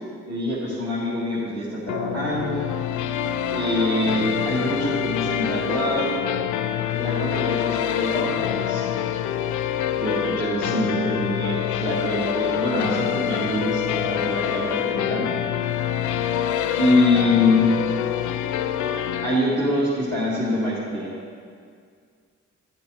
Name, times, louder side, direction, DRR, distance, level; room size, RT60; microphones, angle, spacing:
voice 1, 0.3-2.7 3.5-6.2 6.9-8.9 9.9-15.3 16.8-17.7 19.2-21.1, left 1 dB, 55° right, -10 dB, 2.7 m, -24 dB
sound 1, 1.9-19.4, left 10 dB, 75° left, 0.5 m, -26 dB
13.5 x 7.9 x 3.3 m, 2.2 s
supercardioid pair, 50°, 30 cm